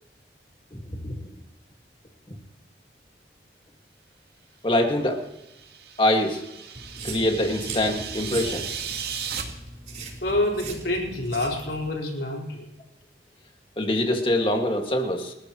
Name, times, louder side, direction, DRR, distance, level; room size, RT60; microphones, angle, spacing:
voice 1, 0.7-1.2 4.6-5.2 6.0-6.4 7.0-8.8 13.8-15.3, left 1 dB, 30° left, 3 dB, 2.0 m, -24 dB
sound 1, 5.3-9.4, right 8 dB, 60° right, 2.0 m, -36 dB
sound 2, 6.8-11.9, right 3 dB, 40° right, 4.3 m, -39 dB
voice 2, 10.2-12.7, left 1 dB, 75° left, -1 dB, 4.7 m, -27 dB
29.5 x 14.5 x 3.1 m, 0.91 s
head